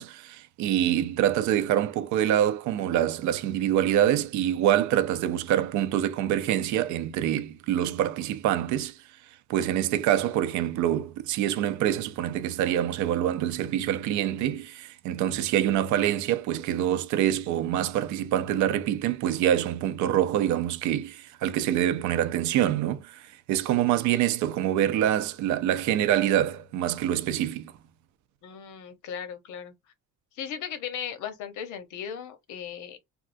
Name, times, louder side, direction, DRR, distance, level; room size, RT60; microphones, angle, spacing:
voice 1, 0.0-8.9 9.5-27.7, right 11 dB, 70° right, 0.5 m, -25 dB
voice 2, 28.4-29.7 30.3-33.0, left 8 dB, 75° left, 0.8 m, -37 dB
3.5 x 2.3 x 2.5 m
cardioid pair, 165°, 30 cm